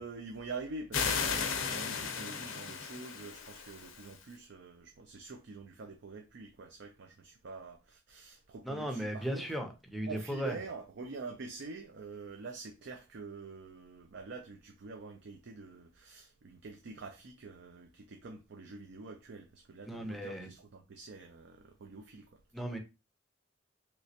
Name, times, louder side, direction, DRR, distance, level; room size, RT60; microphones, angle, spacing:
voice 1, 0.0-9.5 10.1-22.8, right 3 dB, 60° right, 0.5 m, -46 dB
sound 1, 0.9-4.2, left 6 dB, 85° left, 0.6 m, -35 dB
voice 2, 8.6-10.6 19.8-20.5 22.5-22.8, equal, ahead, 0.6 m, -36 dB
3.3 x 2.9 x 2.8 m
head